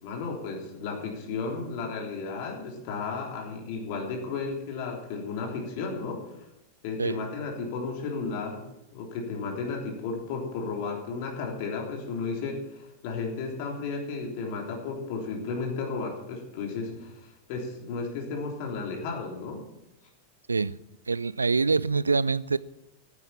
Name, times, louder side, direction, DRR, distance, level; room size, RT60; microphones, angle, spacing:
voice 1, 0.0-6.5 6.8-8.6 8.9-19.6, left 4 dB, 45° left, 0 dB, 3.4 m, -34 dB
voice 2, 21.1-22.6, right 4 dB, 75° right, 20 dB, 0.4 m, -25 dB
14.5 x 9.8 x 7.2 m, 0.89 s
figure-of-eight pair, 90°, 0 cm